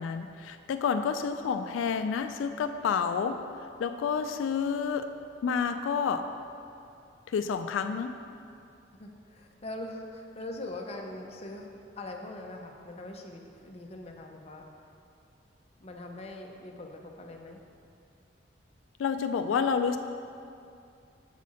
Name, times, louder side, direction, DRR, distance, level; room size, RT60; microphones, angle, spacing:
voice 1, 0.0-5.1 5.4-6.3 7.3-8.2 19.0-20.0, left 6 dB, 90° left, 8 dB, 0.3 m, -29 dB
voice 2, 8.9-11.7 12.0-14.6 15.8-17.6, left 2 dB, 35° left, 1 dB, 0.6 m, -42 dB
7.4 x 4.2 x 6.2 m, 2.5 s
head